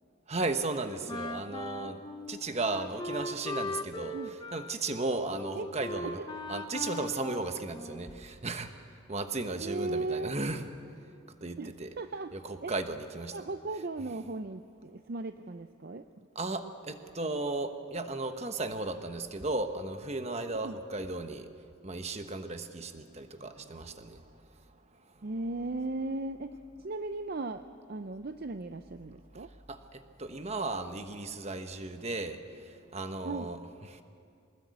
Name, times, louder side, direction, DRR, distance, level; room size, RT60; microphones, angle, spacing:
voice 1, 0.3-2.0 2.3-4.2 4.5-6.2 6.5-8.8 9.1-10.7 11.4-11.9 12.3-13.4 16.3-21.5 21.8-24.3 29.7-32.4 32.6-33.6 33.9-34.0, right 2 dB, 30° right, 7 dB, 1.2 m, -35 dB
Wind instrument woodwind instrument, 1.1-8.3, left 1 dB, 20° left, 0.9 m, -39 dB
voice 2, 9.6-10.4 11.6-12.3 12.6-12.7 13.3-16.3 20.6-20.8 25.2-29.5 33.2-33.5, right 2 dB, 45° right, 9 dB, 0.5 m, -37 dB
24.0 x 20.0 x 8.4 m, 2.4 s
head